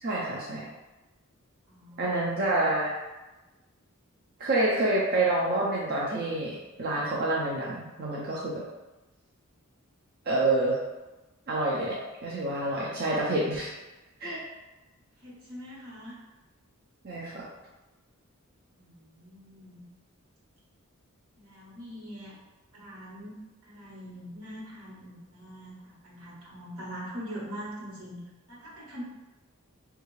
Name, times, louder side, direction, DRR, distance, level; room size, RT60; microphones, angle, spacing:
voice 1, 0.0-0.7 2.0-3.0 4.4-8.6 10.3-10.8 11.5-13.7 14.2-14.4 17.0-17.5, right 2 dB, 45° right, -5 dB, 0.5 m, -28 dB
voice 2, 1.7-2.8 15.2-16.2 18.7-19.9 21.3-22.3 22.7-29.0, equal, 80° right, -6 dB, 1.2 m, -43 dB
3.5 x 2.4 x 3.1 m, 1.1 s
head